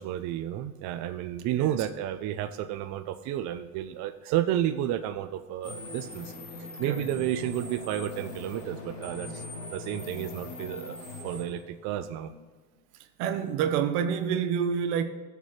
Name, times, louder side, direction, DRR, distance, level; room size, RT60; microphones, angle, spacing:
voice 1, 0.0-11.0 11.2-12.3, right 11 dB, 50° right, 0.5 m, -31 dB
voice 2, 1.5-1.9 6.9-7.1 9.3-9.4 13.2-15.0, right 7 dB, 75° right, 1.1 m, -28 dB
sound 1, 5.6-11.4, left 3 dB, 75° left, 3.3 m, -40 dB
18.0 x 6.6 x 3.2 m
cardioid pair, 155°, 37 cm